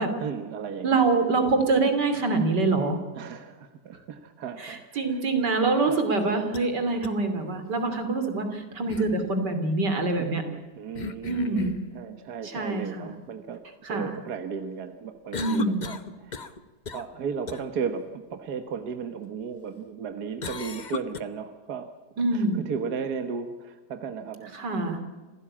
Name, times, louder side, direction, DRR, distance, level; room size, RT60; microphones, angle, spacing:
voice 1, 0.2-1.0 3.2-5.2 5.8-6.0 10.2-13.6 13.9-16.6 16.9-21.9 22.3-24.5 24.9-25.0, right 6 dB, 70° right, 8 dB, 1.7 m, -35 dB
voice 2, 0.8-3.0 4.6-10.4 11.3-11.8 12.4-13.1 13.8-14.2 15.4-15.8 22.2-22.6 24.5-25.0, right 3 dB, 90° right, 7 dB, 3.5 m, -25 dB
sound 1, 6.2-6.7 7.0-7.1 8.9-9.2 11.0-11.8 15.3-16.6 16.9-17.1 17.5-17.6 20.4-21.2, left 5 dB, 35° left, 0.9 m, -36 dB
26.5 x 16.5 x 8.6 m, 1.3 s
omnidirectional pair, 1.8 m